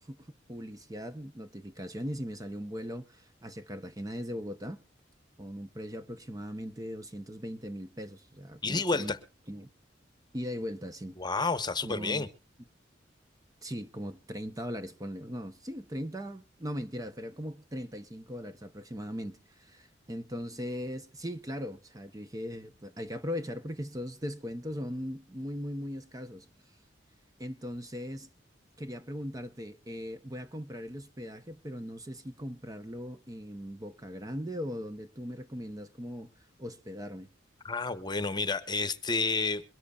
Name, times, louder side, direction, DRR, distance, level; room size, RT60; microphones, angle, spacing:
voice 1, 0.0-4.8 5.4-9.1 9.5-9.7 10.3-11.2 11.8-12.3 13.6-26.5 27.4-28.3 28.8-36.3 36.6-37.3, equal, 20° right, 0.8 m, -39 dB
voice 2, 8.6-9.2 11.2-12.3 37.6-39.6, left 3 dB, 25° left, 1.0 m, -30 dB
23.0 x 14.0 x 2.4 m
head